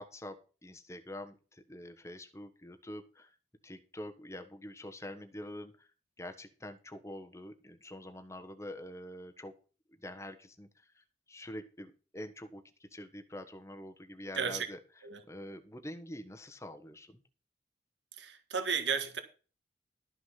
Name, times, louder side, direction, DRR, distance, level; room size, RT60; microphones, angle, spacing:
voice 1, 0.0-3.3 3.6-5.9 6.2-9.5 10.0-14.8 15.3-17.2, left 1 dB, 15° left, 1.2 m, -46 dB
voice 2, 14.3-14.7 15.0-15.2 18.2-19.2, right 6 dB, 75° right, 1.8 m, -33 dB
13.0 x 6.3 x 5.8 m
head